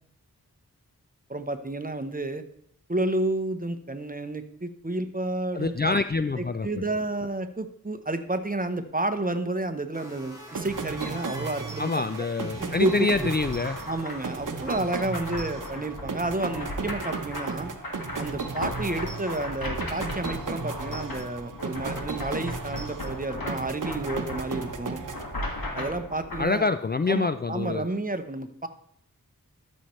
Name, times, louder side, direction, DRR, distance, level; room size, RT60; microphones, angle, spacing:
voice 1, 1.3-2.4 2.9-5.9 6.4-11.9 12.6-12.9 13.9-17.7 18.2-25.0 25.7-26.7 27.1-28.7, right 2 dB, 25° right, 9 dB, 0.8 m, -30 dB
voice 2, 5.5-6.7 11.8-13.8 26.4-27.9, left 3 dB, 30° left, 10 dB, 0.4 m, -26 dB
sound 1, 9.9-15.0, equal, 10° right, 2.4 m, -45 dB
sound 2, 10.5-25.8, right 4 dB, 60° right, 0.8 m, -36 dB
sound 3, 13.0-26.4, left 1 dB, 85° left, 1.9 m, -37 dB
13.0 x 6.4 x 3.1 m, 0.71 s
wide cardioid pair, 55°, 35 cm